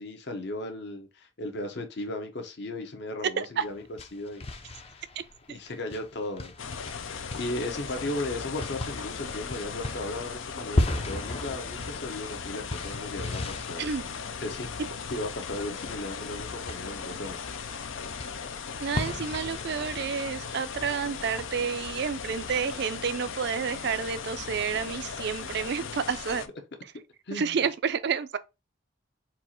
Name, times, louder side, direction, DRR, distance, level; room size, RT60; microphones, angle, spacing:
voice 1, 0.0-5.0 5.5-6.5 6.9-13.9 14.4-14.8 15.1-17.6 27.3-27.7, left 2 dB, 60° left, 0.9 m, -36 dB
sound 1, 3.6-21.7, left 1 dB, 30° left, 0.5 m, -37 dB
sound 2, 6.6-26.5, left 6 dB, 75° left, 0.5 m, -38 dB
voice 2, 18.8-26.4 27.3-28.4, right 6 dB, 55° right, 0.4 m, -30 dB
4.4 x 2.5 x 4.3 m
head